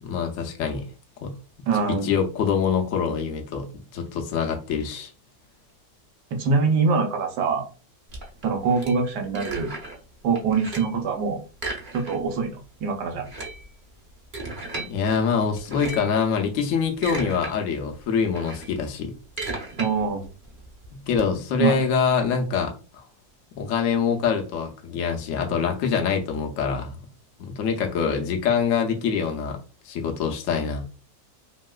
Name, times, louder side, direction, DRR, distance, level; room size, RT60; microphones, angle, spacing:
voice 1, 0.0-0.9 1.2-1.3 2.0-5.1 14.9-19.1 20.9-23.0 23.6-27.0 27.4-29.6 29.8-30.9, left 6 dB, 80° left, 0.7 m, -25 dB
voice 2, 1.7-2.1 6.4-7.6 8.4-9.7 10.2-11.4 11.9-13.3 19.8-20.3 21.6-21.8, right 5 dB, 70° right, 1.2 m, -24 dB
sound 1, 8.1-10.0 10.4-11.0 11.5-12.4 12.7-12.8 13.1-14.9 15.5-16.2 16.7-17.5 17.9-21.2, right 2 dB, 50° right, 0.5 m, -35 dB
3.1 x 2.8 x 2.3 m
omnidirectional pair, 2.0 m